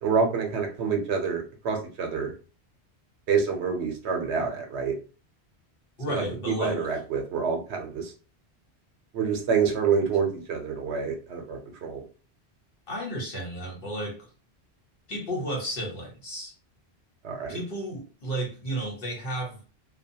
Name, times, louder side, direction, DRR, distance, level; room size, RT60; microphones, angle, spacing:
voice 1, 0.0-2.3 3.3-5.0 6.1-8.1 9.1-12.0 17.2-17.6, right 6 dB, 80° right, 3 dB, 0.9 m, -27 dB
voice 2, 6.0-7.0 12.9-14.3 15.1-16.5 17.5-19.6, right 1 dB, 55° left, -2 dB, 1.3 m, -33 dB
2.4 x 2.3 x 2.7 m, 0.36 s
omnidirectional pair, 1.1 m